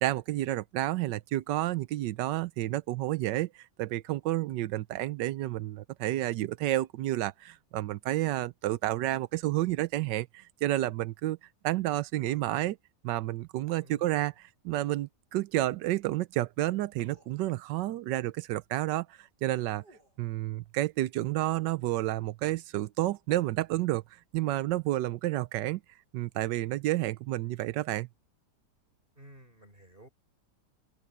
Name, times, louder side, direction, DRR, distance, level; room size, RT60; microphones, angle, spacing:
voice 1, 0.0-11.4 11.6-12.8 13.0-19.8 20.2-24.0 24.3-25.8 26.1-28.1, right 15 dB, 90° right, 1.3 m, -30 dB
sound 1, 12.2-12.5 14.8-15.1 16.4-16.5 17.0-17.4 19.3-20.2, right 2 dB, 70° right, 8.6 m, -61 dB
voice 2, 13.8-14.3 29.2-30.1, right 1 dB, 30° right, 4.5 m, -54 dB
open air
omnidirectional pair, 1.8 m